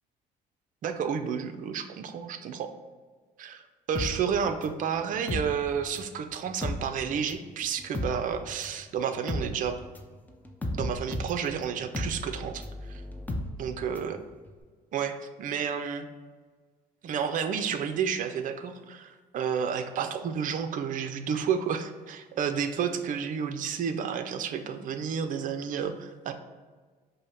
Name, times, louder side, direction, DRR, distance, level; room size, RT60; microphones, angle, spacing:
voice 1, 0.8-2.7 3.4-9.8 10.7-13.0 13.6-14.2 14.9-16.1 17.0-26.3, right 7 dB, 50° right, 8 dB, 0.5 m, -31 dB
sound 1, 3.9-6.2 6.5-14.2 14.5-14.6, left 1 dB, 10° left, 0.5 m, -35 dB
5.2 x 2.1 x 4.4 m, 1.4 s
cardioid pair, 110°, 17 cm